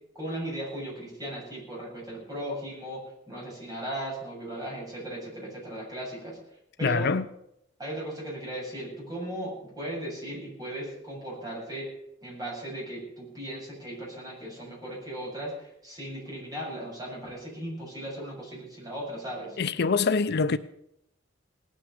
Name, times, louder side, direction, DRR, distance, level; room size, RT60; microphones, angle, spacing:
voice 1, 0.1-3.0 3.3-6.4 6.8-7.1 7.8-11.9 12.2-19.6, right 1 dB, 20° right, 7.5 m, -37 dB
voice 2, 6.8-7.2 19.6-20.6, left 4 dB, 55° left, 0.5 m, -24 dB
18.5 x 9.2 x 7.1 m
head